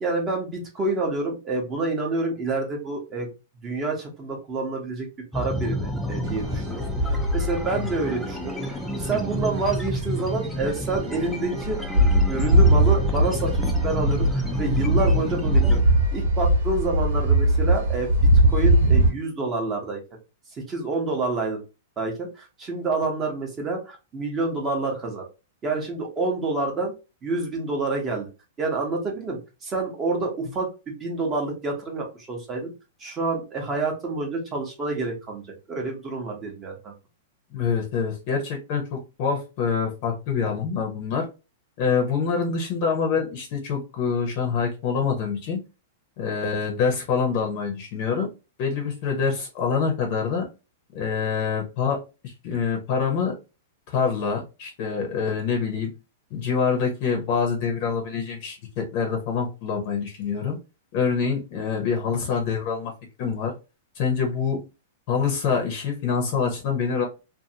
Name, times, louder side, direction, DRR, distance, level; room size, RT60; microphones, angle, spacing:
voice 1, 0.0-3.3 3.6-5.1 5.3-11.8 12.3-15.8 16.1-18.1 18.5-20.0 20.5-21.6 22.0-25.3 25.6-26.9 27.2-28.3 28.6-32.7 33.0-35.4 35.7-36.9, right 3 dB, 20° right, 1 dB, 0.8 m, -28 dB
sound 1, 5.3-15.8, equal, ahead, 0.4 m, -30 dB
sound 2, 6.3-7.9 8.5-8.7 9.4-10.0 10.3-10.4 10.6-10.7 10.9-19.1, right 1 dB, 70° right, 1.0 m, -20 dB
voice 2, 37.5-41.2 41.8-45.6 46.2-48.3 48.6-50.5 50.9-52.0 52.2-53.3 53.9-55.9 56.3-60.6 60.9-62.9 63.2-63.5 64.0-64.6 65.1-67.1, left 6 dB, 40° left, 2 dB, 0.7 m, -25 dB
2.5 x 2.5 x 2.7 m, 0.29 s
supercardioid pair, 160°, 0 cm